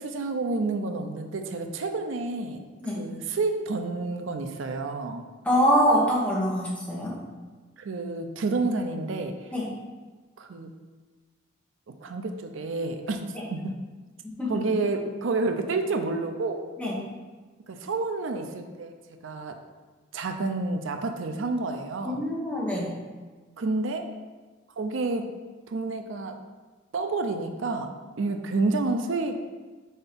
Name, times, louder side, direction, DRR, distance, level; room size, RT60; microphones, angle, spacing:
voice 1, 0.0-2.6 2.9-5.2 7.8-9.5 10.4-10.7 12.0-13.7 14.5-16.7 17.7-18.9 19.2-19.6 20.1-22.2 23.6-24.1 24.8-25.4 25.7-26.4 26.9-29.4, right 3 dB, 80° right, 6 dB, 0.5 m, -29 dB
voice 2, 5.4-7.1 9.5-9.7 13.3-13.4 14.4-14.6 16.8-16.9 22.0-22.9, equal, 5° left, -5 dB, 1.2 m, -24 dB
4.5 x 4.4 x 5.2 m, 1.3 s
head